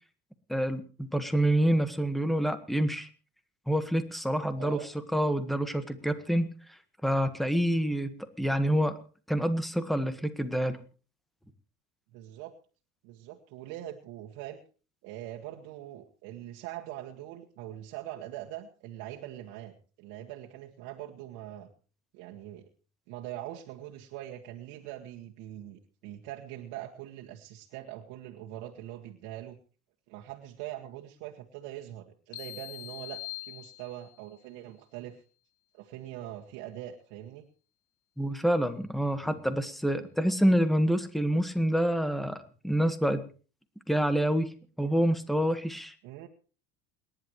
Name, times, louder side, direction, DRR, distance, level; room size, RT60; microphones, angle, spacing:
voice 1, 0.5-3.1 3.7-4.8 5.1-6.5 7.0-9.0 9.3-10.8 38.2-43.3 43.9-44.5 44.8-45.9, equal, ahead, 10 dB, 1.6 m, -27 dB
voice 2, 4.6-4.9 12.1-12.5 13.0-14.6 15.0-21.7 22.1-22.7 23.1-29.6 30.1-35.2 35.7-37.4 46.0-46.3, right 13 dB, 70° right, -1 dB, 2.0 m, -42 dB
sound 1, 32.3-34.3, left 20 dB, 85° left, 3.0 m, -42 dB
28.5 x 11.0 x 3.2 m, 0.37 s
cardioid pair, 130°, 33 cm